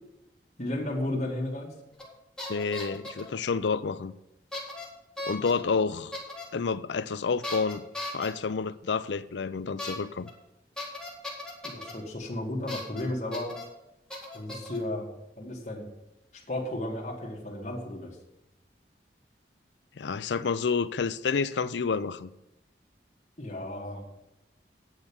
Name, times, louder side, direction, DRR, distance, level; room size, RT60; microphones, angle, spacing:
voice 1, 0.6-1.7 11.6-13.5 14.3-15.1 15.4-15.9 16.3-18.2 23.4-24.0, left 1 dB, 40° left, 2.3 m, -33 dB
sound 1, 2.0-2.1 2.4-3.3 4.5-4.8 5.2-5.5 6.1-6.4 7.4-8.3 9.8-9.9 10.2-10.3 10.8-11.9 12.7-13.0 13.3-13.6 14.1-14.8, left 2 dB, 5° left, 2.1 m, -37 dB
voice 2, 2.5-4.1 5.3-6.1 6.5-7.8 8.1-10.3 20.0-22.3, left 5 dB, 90° left, 0.5 m, -29 dB
9.6 x 6.7 x 7.1 m
head